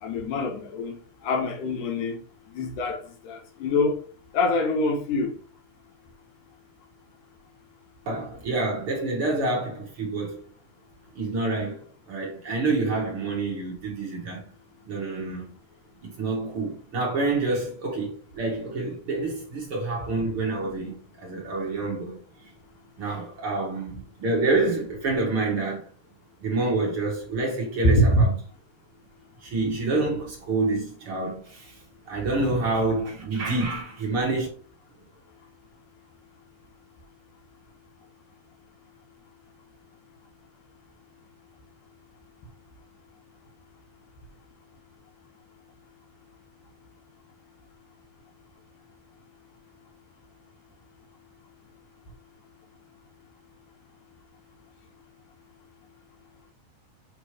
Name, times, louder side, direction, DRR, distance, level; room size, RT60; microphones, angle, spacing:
voice 1, 0.0-2.2 2.5-4.0 4.3-5.3 27.8-28.2, left 1 dB, 65° left, 2.2 m, -25 dB
voice 2, 8.0-10.4 11.1-14.5 14.9-15.4 16.2-22.5 23.0-25.8 26.4-28.4 29.4-31.8 32.1-34.5, right 3 dB, 65° right, 1.4 m, -27 dB
7.8 x 3.1 x 4.9 m
omnidirectional pair, 4.7 m